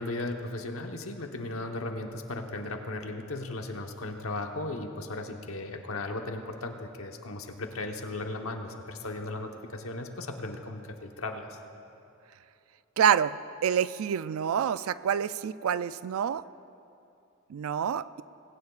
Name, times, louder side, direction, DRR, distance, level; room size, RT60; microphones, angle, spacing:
voice 1, 0.0-11.6, left 2 dB, 85° left, 4 dB, 1.1 m, -36 dB
voice 2, 13.0-13.4 13.6-16.4 17.5-18.2, right 8 dB, 80° right, 16 dB, 0.3 m, -27 dB
20.0 x 16.0 x 2.4 m, 2.7 s
head